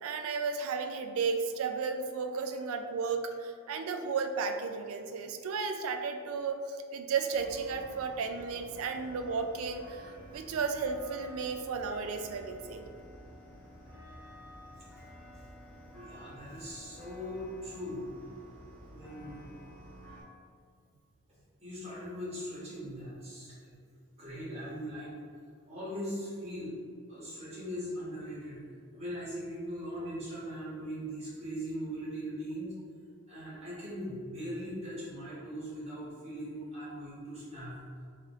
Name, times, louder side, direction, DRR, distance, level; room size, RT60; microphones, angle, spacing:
voice 1, 0.0-12.8, right 5 dB, 70° right, 6 dB, 0.3 m, -34 dB
sound 1, 7.3-20.2, equal, 10° left, 0.8 m, -51 dB
voice 2, 15.9-18.0 18.9-19.4 21.6-23.8 24.2-25.2 25.7-26.7 27.1-28.6 28.9-32.7 33.3-37.8, equal, 30° right, -10 dB, 1.4 m, -40 dB
3.2 x 3.1 x 3.5 m, 2.2 s
head